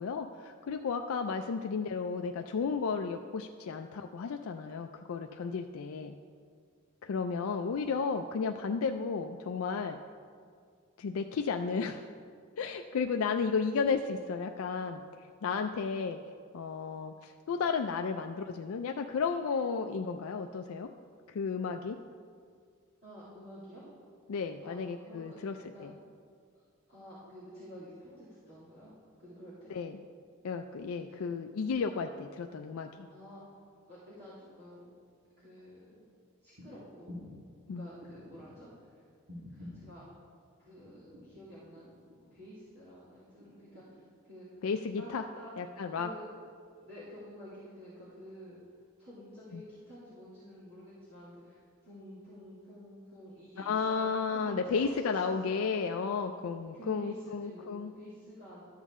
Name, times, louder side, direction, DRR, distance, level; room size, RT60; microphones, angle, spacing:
voice 1, 0.0-6.2 7.0-10.0 11.0-12.0 12.6-15.0 15.4-16.2 16.5-20.9 21.3-22.0 24.3-25.5 25.8-25.9 29.7-30.0 30.4-33.1 37.7-37.8 44.6-45.2 45.6-46.1 53.6-57.9, left 5 dB, 80° left, 5 dB, 0.4 m, -33 dB
voice 2, 23.0-23.9 24.6-25.4 25.7-26.1 26.9-28.9 29.2-29.7 30.9-31.3 33.1-33.5 33.9-34.9 35.4-36.0 36.4-37.1 37.7-39.0 39.5-40.0 40.6-41.9 42.3-44.6 44.9-45.5 45.9-46.2 46.8-48.6 49.0-55.6 56.7-58.6, equal, 45° right, -12 dB, 2.6 m, -50 dB
sound 1, 36.5-36.7 37.1-37.4 38.0-38.6 39.3-39.9 40.8-41.4 41.8-42.4 43.4-44.1 45.0-45.1, left 1 dB, 90° right, 2.2 m, -48 dB
13.0 x 7.3 x 3.6 m, 2.1 s
head